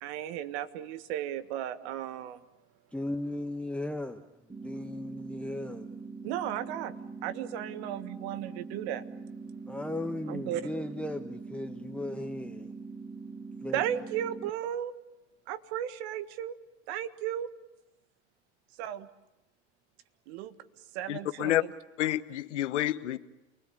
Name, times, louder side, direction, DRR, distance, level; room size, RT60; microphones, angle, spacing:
voice 1, 0.0-2.4 6.2-9.0 10.3-10.6 13.7-14.9 15.5-16.6 16.9-17.5 18.8-19.1 20.3-20.6 20.9-21.7, right 11 dB, 70° right, 1.7 m, -35 dB
voice 2, 2.9-4.2 4.6-5.9 9.7-12.7 13.6-13.8, left 1 dB, 5° left, 1.2 m, -36 dB
sound 1, 4.5-14.5, right 4 dB, 15° right, 1.9 m, -43 dB
voice 3, 21.1-21.6 22.0-23.2, left 13 dB, 90° left, 1.1 m, -29 dB
29.0 x 20.5 x 8.6 m
hypercardioid pair, 85°, 34 cm